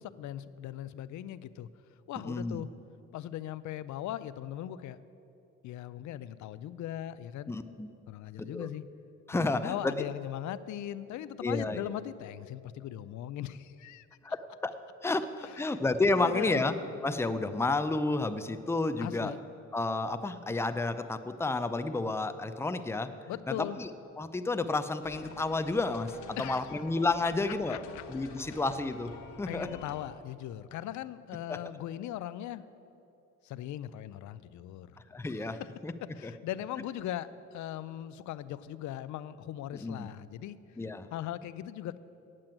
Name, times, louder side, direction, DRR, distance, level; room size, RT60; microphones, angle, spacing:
voice 1, 0.0-1.7 2.1-2.7 3.1-5.0 5.6-7.5 8.1-8.8 9.3-14.1 15.4-15.8 16.2-16.7 19.0-19.4 23.3-23.8 26.4-26.7 27.5-28.0 29.5-32.6 33.4-35.7 36.0-40.6 41.1-42.0, left 12 dB, 70° left, 15 dB, 0.5 m, -39 dB
voice 2, 2.2-2.6 7.5-7.9 8.5-8.7 9.3-10.1 11.4-11.9 14.2-14.7 15.0-16.7 17.0-19.3 19.7-23.1 23.5-23.9 24.2-27.8 28.1-29.1 29.4-29.7 31.5-31.6 35.1-35.9 36.2-36.3 39.7-40.1 40.8-41.1, left 3 dB, 10° left, 10 dB, 0.5 m, -31 dB
sound 1, 25.0-30.1, left 5 dB, 90° left, 1.2 m, -49 dB
8.6 x 7.6 x 8.9 m, 2.8 s
cardioid pair, 90°, 30 cm